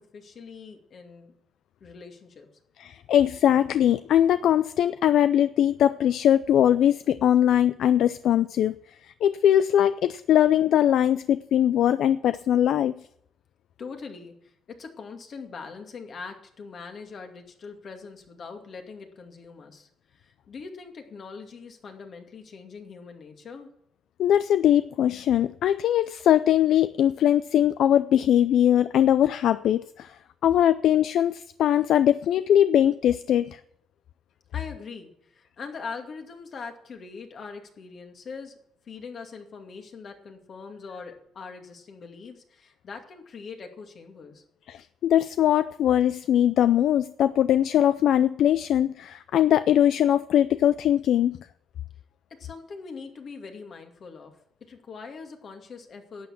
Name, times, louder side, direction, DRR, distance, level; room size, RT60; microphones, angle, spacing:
voice 1, 0.1-1.3 1.8-2.5 13.8-23.7 34.5-38.6 38.9-44.4 52.3-56.3, left 5 dB, 55° left, 4 dB, 2.3 m, -42 dB
voice 2, 2.8-8.8 9.2-12.9 24.2-30.1 30.4-33.6 44.7-51.4, left 10 dB, 75° left, 14 dB, 0.4 m, -21 dB
12.0 x 8.5 x 7.2 m, 0.73 s
cardioid pair, 90°, 0 cm